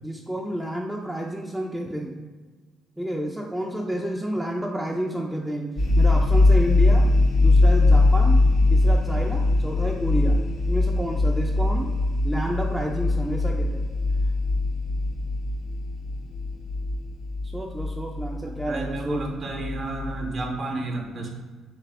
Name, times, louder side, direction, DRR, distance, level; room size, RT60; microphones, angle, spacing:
voice 1, 0.0-2.3 3.0-7.1 7.4-8.5 8.7-10.4 10.7-11.9 12.2-13.8 17.4-19.3, right 1 dB, 5° right, -1 dB, 0.4 m, -30 dB
sound 1, 5.8-20.5, left 2 dB, 65° left, 0.7 m, -21 dB
voice 2, 18.7-21.3, right 2 dB, 50° right, 1 dB, 0.7 m, -31 dB
3.4 x 3.3 x 3.3 m, 1.4 s
supercardioid pair, 60°, 0 cm